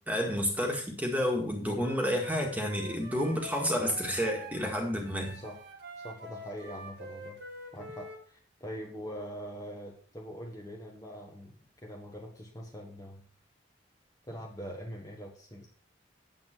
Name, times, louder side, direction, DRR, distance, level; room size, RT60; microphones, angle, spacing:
voice 1, 0.1-5.4, equal, 10° right, 1 dB, 1.9 m, -30 dB
Wind instrument woodwind instrument, 1.8-4.7 5.0-8.2, right 1 dB, 70° right, 2.0 m, -46 dB
voice 2, 6.0-7.4 7.7-13.2 14.3-15.7, equal, 20° left, -1 dB, 1.4 m, -43 dB
9.0 x 7.8 x 4.5 m, 0.43 s
head